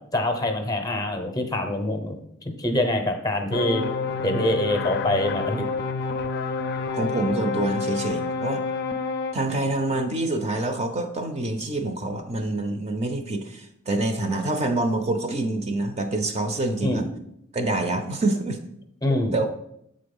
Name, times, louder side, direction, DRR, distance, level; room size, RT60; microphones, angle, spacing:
voice 1, 0.1-2.2 2.4-3.9 4.2-5.7 16.8-17.1 19.0-19.3, left 1 dB, 20° left, 5 dB, 0.7 m, -25 dB
sound 1, 3.5-9.3, left 4 dB, 50° left, 0.4 m, -28 dB
voice 2, 6.9-8.6 9.3-17.0 17.5-18.6 19.3-19.5, right 2 dB, 30° right, 6 dB, 0.6 m, -26 dB
7.3 x 3.9 x 5.3 m, 0.75 s
head